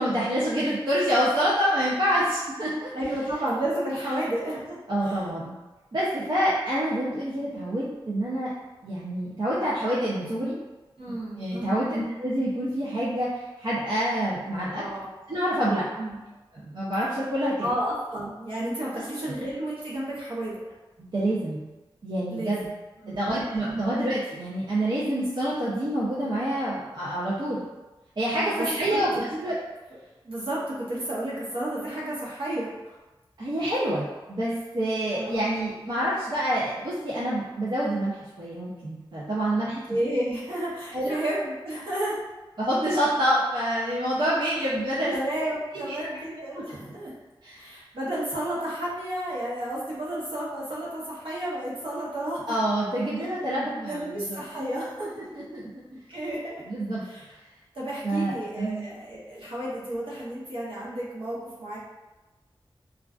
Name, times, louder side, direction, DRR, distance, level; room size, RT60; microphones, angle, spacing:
voice 1, 0.0-2.9 4.9-5.5 5.9-8.5 8.8-10.6 11.1-14.9 15.3-15.9 16.5-17.7 18.9-19.0 21.0-21.6 22.0-22.7 23.1-27.7 28.2-29.1 29.4-29.6 33.4-39.8 40.9-41.2 42.6-45.1 45.7-46.0 46.5-46.6 47.4-47.7 52.5-54.4 55.0-55.6 56.6-57.0 58.0-58.9, right 1 dB, 55° right, -8 dB, 0.5 m, -27 dB
voice 2, 2.9-5.2 11.0-11.9 14.7-15.1 16.0-16.2 17.6-20.6 22.3-22.6 23.0-23.3 23.6-23.9 28.3-29.4 30.2-33.0 35.1-35.3 39.9-42.2 45.1-47.1 47.6-52.6 53.8-55.2 55.9-56.6 57.0-57.3 57.7-61.8, right 1 dB, 70° right, -7 dB, 0.8 m, -32 dB
2.4 x 2.2 x 2.3 m, 1.1 s
wide cardioid pair, 70°, 9 cm